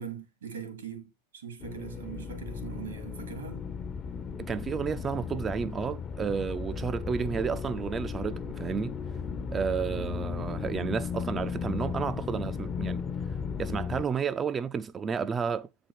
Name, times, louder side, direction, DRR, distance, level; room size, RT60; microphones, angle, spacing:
voice 1, 0.0-3.7 9.9-10.2, right 7 dB, 85° right, 2.2 m, -41 dB
sound 1, 1.6-14.0, left 6 dB, 30° left, 0.6 m, -35 dB
voice 2, 4.4-8.9 9.5-13.0 13.6-15.7, right 6 dB, 25° right, 0.4 m, -31 dB
7.6 x 4.5 x 4.5 m
hypercardioid pair, 105°, 0 cm